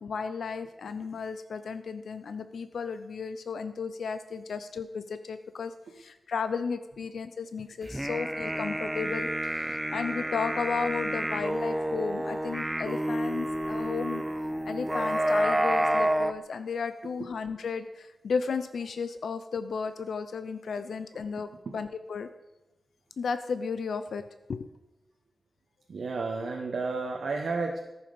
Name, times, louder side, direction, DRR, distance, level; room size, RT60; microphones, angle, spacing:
voice 1, 0.0-14.2 14.6-21.5 21.7-22.3 23.2-24.2 24.5-24.7, left 5 dB, 85° left, 10 dB, 0.5 m, -34 dB
sound 1, 7.9-16.3, right 1 dB, 10° right, 0.5 m, -29 dB
voice 2, 25.9-27.8, right 3 dB, 70° right, 0 dB, 0.9 m, -32 dB
14.0 x 5.9 x 5.3 m, 1.0 s
wide cardioid pair, 115°, 0 cm